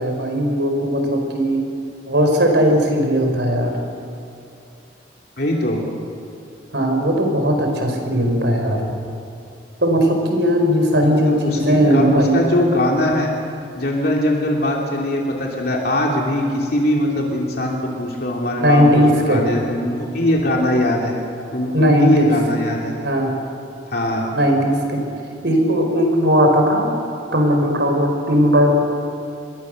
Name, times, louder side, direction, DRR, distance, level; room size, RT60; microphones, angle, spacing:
voice 1, 0.0-1.6 2.1-3.7 6.7-8.8 9.8-12.4 18.6-19.4 21.7-22.4 23.0-23.4 24.3-25.1 25.4-26.9 27.3-28.7, equal, 70° right, 3 dB, 4.9 m, -17 dB
voice 2, 5.4-5.8 11.0-13.3 13.7-21.1 21.5-22.9 23.9-24.3, left 1 dB, 55° left, -2 dB, 3.0 m, -21 dB
26.0 x 22.5 x 6.6 m, 2.7 s
head